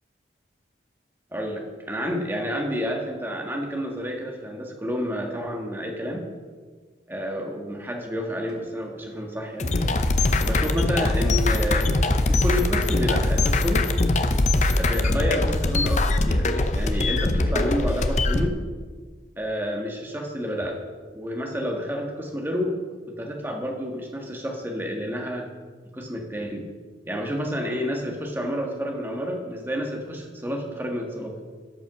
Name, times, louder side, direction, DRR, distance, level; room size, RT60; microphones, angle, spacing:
voice 1, 1.3-6.3 7.1-9.7 10.4-13.9 14.8-16.5 16.7-18.6 19.4-20.8 21.1-22.8 23.2-25.5 25.9-26.7 27.0-31.4, equal, 10° right, 1 dB, 1.4 m, -29 dB
sound 1, 8.5-12.2 12.5-12.6, equal, 70° right, 2.2 m, -45 dB
sound 2, 9.6-18.5, left 2 dB, 40° left, 0.6 m, -22 dB
12.5 x 5.6 x 6.2 m, 1.5 s
head